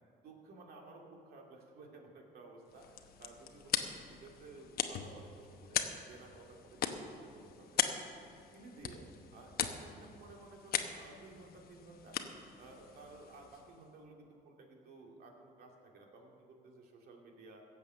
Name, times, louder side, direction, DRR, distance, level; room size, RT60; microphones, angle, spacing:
voice 1, 0.2-7.8 8.5-12.3 12.6-17.6, right 3 dB, 65° right, 0 dB, 2.5 m, -55 dB
sound 1, 2.6-13.9, left 9 dB, 65° left, 0.9 m, -40 dB
16.5 x 7.2 x 6.9 m, 2.5 s
cardioid pair, 110°, 17 cm